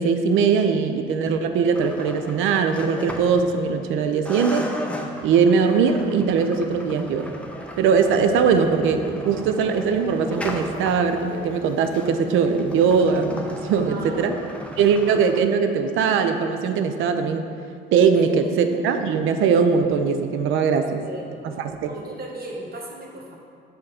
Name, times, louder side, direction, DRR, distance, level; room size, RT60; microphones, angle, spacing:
voice 1, 0.0-4.7 5.2-7.3 7.8-14.3 14.8-17.5 17.9-21.0 21.8-21.9, right 6 dB, 85° right, 7 dB, 0.5 m, -20 dB
sound 1, 1.7-3.9 4.3-15.4, left 1 dB, 5° left, 0.7 m, -36 dB
voice 2, 13.9-14.3 18.1-18.7 20.8-21.5 21.8-23.4, right 2 dB, 50° right, -2 dB, 1.4 m, -37 dB
6.7 x 3.7 x 5.6 m, 2.4 s
cardioid pair, 90°, 20 cm